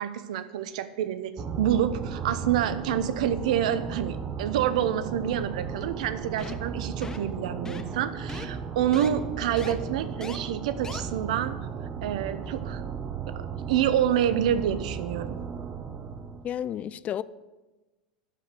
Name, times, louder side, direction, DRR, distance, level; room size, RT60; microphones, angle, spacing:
voice 1, 0.0-1.3 1.6-11.5 12.0-12.8 13.3-15.4, right 10 dB, 65° right, 0.7 m, -27 dB
sound 1, 1.4-16.5, right 6 dB, 35° right, 0.8 m, -35 dB
sound 2, 6.4-6.7 7.0-7.3 7.6-8.0 8.3-8.5 8.9-9.1 9.6-9.7 10.2-10.4 10.8-11.0, left 3 dB, 15° left, 0.9 m, -38 dB
voice 2, 16.4-17.2, left 10 dB, 35° left, 0.4 m, -31 dB
11.5 x 5.0 x 6.8 m
hypercardioid pair, 90°, 4 cm